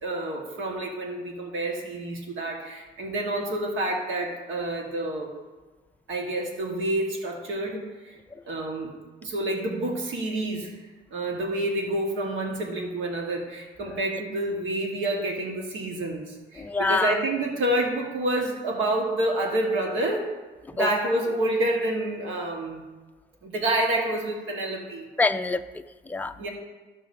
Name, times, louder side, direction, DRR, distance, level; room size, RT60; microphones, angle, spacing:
voice 1, 0.0-5.3 6.1-8.2 8.5-8.9 9.2-10.7 11.1-20.3 20.7-22.8 23.4-25.0 26.4-26.5, right 1 dB, 80° right, 0 dB, 1.4 m, -28 dB
voice 2, 16.6-17.2 20.7-20.9 25.2-26.3, left 3 dB, 10° left, 7 dB, 0.4 m, -26 dB
14.5 x 6.0 x 2.7 m, 1.2 s
cardioid pair, 90°, 20 cm